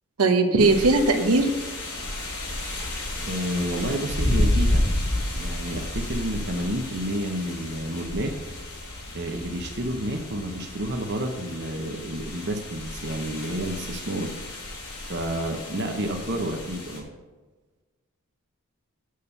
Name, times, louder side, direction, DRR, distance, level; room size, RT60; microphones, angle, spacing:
voice 1, 0.2-1.5, right 3 dB, 80° right, 5 dB, 1.0 m, -19 dB
sound 1, 0.6-17.0, left 1 dB, 80° left, 3.5 m, -31 dB
voice 2, 3.2-4.9 5.3-8.3 9.1-14.3 15.1-17.1, right 1 dB, 50° right, 3 dB, 0.9 m, -30 dB
7.2 x 6.6 x 6.8 m, 1.3 s
head